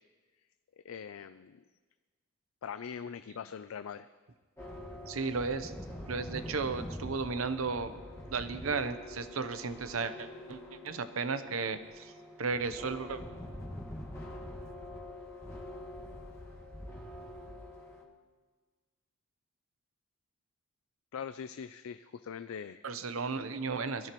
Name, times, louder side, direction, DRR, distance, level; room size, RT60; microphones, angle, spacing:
voice 1, 0.8-1.6 2.6-4.1 21.1-22.8, left 7 dB, 85° left, 12 dB, 0.4 m, -42 dB
sound 1, 4.6-18.0, left 1 dB, 15° left, 1.7 m, -45 dB
voice 2, 5.1-5.7 6.1-8.0 8.3-12.1 12.4-13.2 22.8-24.1, right 4 dB, 80° right, 10 dB, 0.8 m, -34 dB
22.0 x 14.0 x 3.0 m, 1.4 s
head